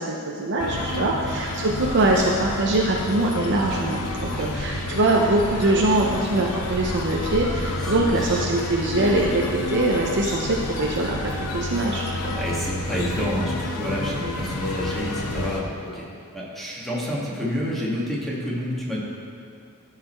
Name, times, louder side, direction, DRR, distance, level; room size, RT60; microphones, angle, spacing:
voice 1, 0.0-12.3, right 2 dB, 55° right, -1 dB, 0.7 m, -23 dB
sound 1, 0.6-15.6, left 2 dB, 85° left, 0.9 m, -29 dB
voice 2, 0.7-1.4 4.3-4.8 7.8-8.4 12.3-16.0 16.3-19.0, equal, ahead, -6 dB, 1.6 m, -30 dB
13.0 x 4.9 x 4.5 m, 2.5 s
head